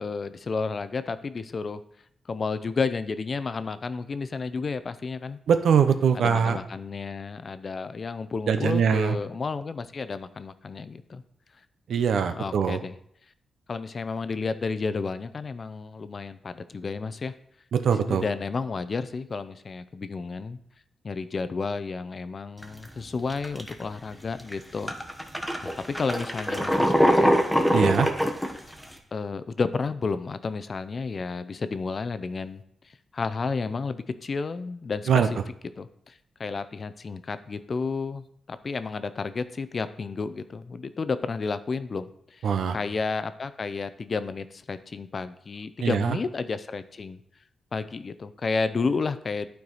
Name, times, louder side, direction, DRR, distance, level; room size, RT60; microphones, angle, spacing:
voice 1, 0.0-1.8 2.3-5.4 6.1-11.2 12.4-13.0 13.7-17.3 17.9-20.6 21.0-24.9 25.6-25.7 26.0-27.5 29.1-32.6 33.1-35.4 35.8-47.2 47.7-49.5, left 4 dB, 40° left, 12 dB, 0.5 m, -31 dB
voice 2, 5.5-6.6 8.5-9.2 11.9-12.8 17.7-18.2 27.7-28.1 35.1-35.3 42.4-42.8 45.8-46.2, right 7 dB, 75° right, 9 dB, 0.7 m, -22 dB
sound 1, 22.6-22.8 23.3-23.8 24.4-24.5 24.9-28.9, equal, ahead, 1.0 m, -23 dB
11.5 x 4.6 x 4.0 m, 0.70 s
cardioid pair, 105°, 0 cm